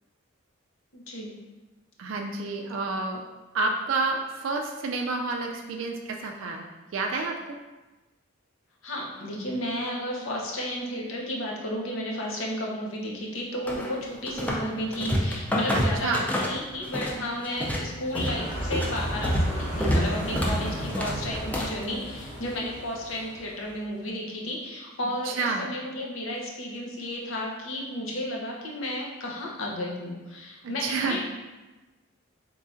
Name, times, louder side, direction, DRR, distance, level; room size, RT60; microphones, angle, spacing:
voice 1, 0.9-1.3 8.8-31.2, left 1 dB, 75° left, -2 dB, 0.7 m, -33 dB
voice 2, 2.0-3.3 3.5-6.7 6.9-7.6 15.7-16.3 25.2-25.7 30.8-31.2, right 3 dB, 70° right, 2 dB, 0.3 m, -29 dB
sound 1, 13.7-14.7 14.9-17.2 17.4-21.8, equal, 10° left, 0.3 m, -27 dB
sound 2, 18.3-23.9, equal, 40° left, 1.0 m, -35 dB
3.7 x 3.1 x 2.5 m, 1.1 s
head